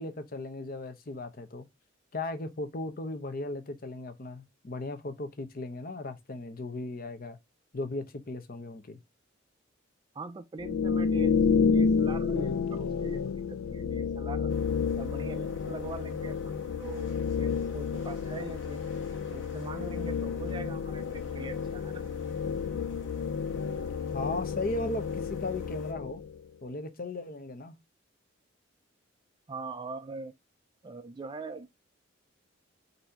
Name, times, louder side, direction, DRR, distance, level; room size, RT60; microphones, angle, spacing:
voice 1, 0.0-1.7 2.1-7.4 7.7-9.0 24.1-26.2 26.6-27.7, left 2 dB, 45° left, 0.7 m, -36 dB
voice 2, 10.1-14.5 15.0-17.1 17.4-18.8 19.3-22.1 29.5-30.3 30.8-31.7, right 3 dB, 20° right, 0.3 m, -42 dB
sound 1, 10.6-26.4, left 5 dB, 85° left, 0.4 m, -30 dB
sound 2, 14.5-25.9, left 1 dB, 65° left, 1.4 m, -52 dB
4.1 x 2.7 x 4.3 m
head